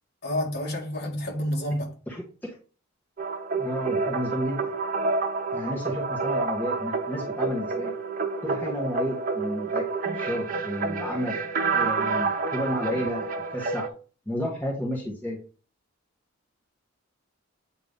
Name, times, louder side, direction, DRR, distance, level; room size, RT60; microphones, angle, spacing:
voice 1, 0.2-1.9, left 1 dB, 50° left, 2.1 m, -29 dB
sound 1, 3.2-13.9, right 4 dB, 40° right, 0.8 m, -29 dB
voice 2, 3.6-4.6 5.5-7.9 8.4-9.9 10.1-11.3 11.7-13.9 14.3-15.4, equal, 10° left, 1.1 m, -31 dB
8.1 x 2.9 x 5.1 m
head